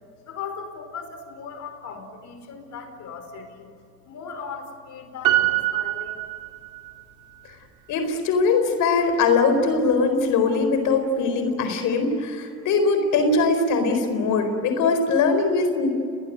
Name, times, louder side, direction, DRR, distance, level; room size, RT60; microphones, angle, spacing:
voice 1, 0.2-3.8 4.0-6.3, left 5 dB, 70° left, 7 dB, 5.1 m, -38 dB
Piano, 5.2-7.0 7.3-7.4, right 15 dB, 75° right, 3.6 m, -24 dB
voice 2, 7.9-15.9, left 4 dB, 90° left, 7 dB, 4.4 m, -21 dB
29.5 x 20.0 x 9.2 m, 2.5 s
cardioid pair, 90°, 30 cm